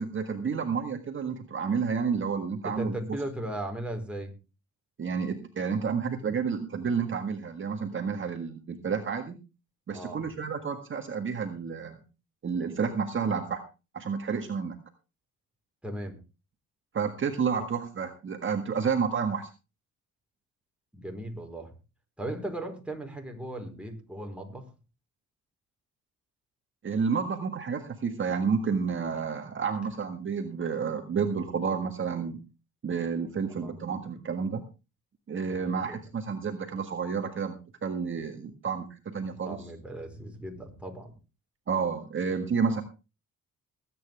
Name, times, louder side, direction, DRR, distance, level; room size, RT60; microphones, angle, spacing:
voice 1, 0.0-2.9 5.0-9.4 9.9-12.0 12.4-13.6 13.9-14.8 16.9-19.5 26.8-32.4 32.8-34.6 35.3-39.6 41.7-42.8, right 6 dB, 40° right, 5 dB, 1.7 m, -30 dB
voice 2, 2.6-4.3 9.9-10.3 15.8-16.2 20.9-21.7 22.2-24.7 33.6-33.8 35.5-35.9 39.4-41.1, right 1 dB, 5° right, 2 dB, 4.3 m, -37 dB
20.5 x 9.2 x 3.5 m, 0.31 s
cardioid pair, 90°, 30 cm